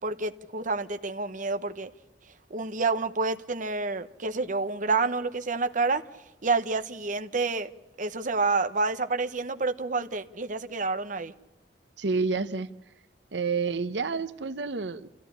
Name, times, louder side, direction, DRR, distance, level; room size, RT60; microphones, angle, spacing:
voice 1, 0.0-1.9 2.5-6.0 6.4-7.7 8.0-11.3, right 3 dB, 50° right, 0.9 m, -28 dB
voice 2, 12.0-12.7 13.3-15.1, right 4 dB, 85° right, 0.8 m, -29 dB
28.0 x 14.5 x 9.8 m
head